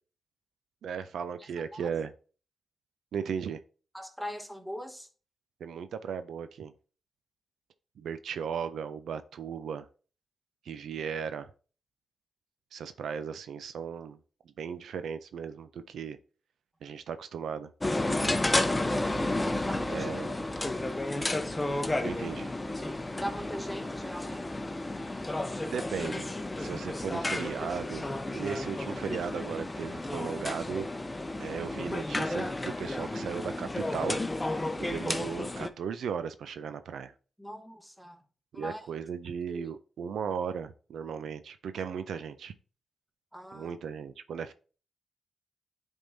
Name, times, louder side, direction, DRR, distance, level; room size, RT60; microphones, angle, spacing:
voice 1, 0.8-2.1 3.1-3.6 5.6-6.7 8.0-9.9 10.7-11.5 12.7-14.2 14.6-16.2 16.8-17.7 18.2-18.4 19.9-20.3 22.0-22.5 25.6-28.0 28.3-30.9 31.4-34.2 34.8-37.1 38.5-42.5 43.5-44.5, right 7 dB, 80° right, 0.4 m, -36 dB
voice 2, 1.4-1.9 3.9-5.1 19.4-20.1 20.6-21.1 23.2-24.7 37.4-38.2 38.5-38.9 39.5-39.7 43.3-43.8, equal, 5° right, 1.1 m, -41 dB
sound 1, 17.8-35.7, left 2 dB, 20° left, 0.7 m, -32 dB
10.0 x 3.6 x 2.6 m
cardioid pair, 50°, 0 cm